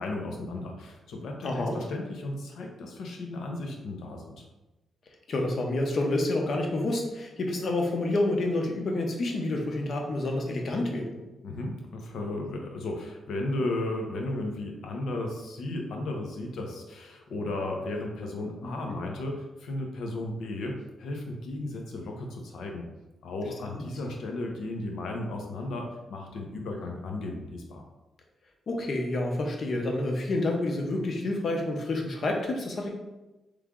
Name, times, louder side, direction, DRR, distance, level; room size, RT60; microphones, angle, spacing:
voice 1, 0.0-4.5 11.4-22.9 23.2-27.8, left 2 dB, 85° left, 2 dB, 0.8 m, -35 dB
voice 2, 1.4-1.8 5.3-11.1 18.6-18.7 28.7-32.9, left 2 dB, 55° left, 1 dB, 0.8 m, -28 dB
3.6 x 3.2 x 3.6 m, 1.1 s
cardioid pair, 115°, 0 cm